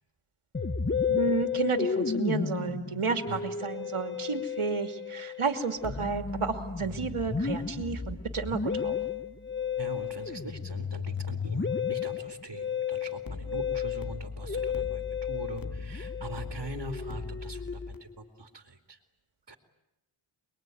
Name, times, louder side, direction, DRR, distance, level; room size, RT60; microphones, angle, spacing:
Musical instrument, 0.5-18.1, left 6 dB, 25° left, 1.0 m, -33 dB
voice 1, 1.1-9.0, right 5 dB, 80° right, 6 dB, 2.7 m, -32 dB
sound 1, 5.8-10.9 13.3-18.0, left 4 dB, 45° left, 2.1 m, -42 dB
voice 2, 9.7-19.0 19.5-19.6, right 2 dB, 50° right, 5 dB, 3.1 m, -42 dB
29.0 x 21.5 x 9.4 m, 0.90 s
cardioid pair, 45°, 50 cm